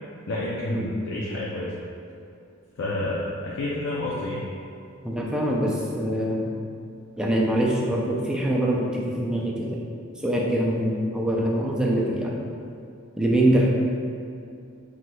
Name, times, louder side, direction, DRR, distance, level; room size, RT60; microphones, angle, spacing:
voice 1, 0.3-1.7 2.8-4.5, left 1 dB, 60° left, -6 dB, 0.5 m, -29 dB
voice 2, 5.0-6.5 7.2-9.8 10.2-12.4 13.2-13.7, right 1 dB, 5° right, -3 dB, 0.4 m, -24 dB
5.8 x 3.1 x 2.2 m, 2.5 s
head